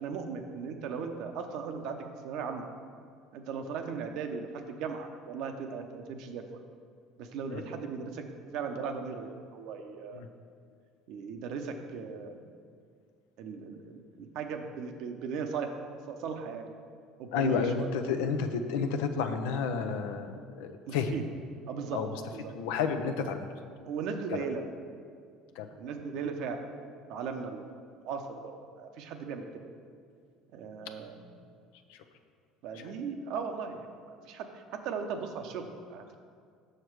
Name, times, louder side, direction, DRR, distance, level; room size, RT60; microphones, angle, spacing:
voice 1, 0.0-2.7 3.3-6.4 7.2-8.2 8.5-10.2 11.1-12.5 13.4-16.7 17.2-17.9 20.9-21.2 21.7-22.0 22.3-22.5 23.9-24.6 25.8-26.6 27.1-27.7 28.0-29.5 30.5-31.2 32.6-33.9 34.3-36.2, right 5 dB, 65° right, 5 dB, 0.7 m, -37 dB
voice 2, 17.3-21.2 21.9-22.2 22.5-23.5 24.3-24.4 25.5-25.7 31.9-32.0 32.7-32.9, left 5 dB, 75° left, 7 dB, 0.5 m, -31 dB
6.6 x 6.4 x 4.6 m, 2.2 s
hypercardioid pair, 70°, 0 cm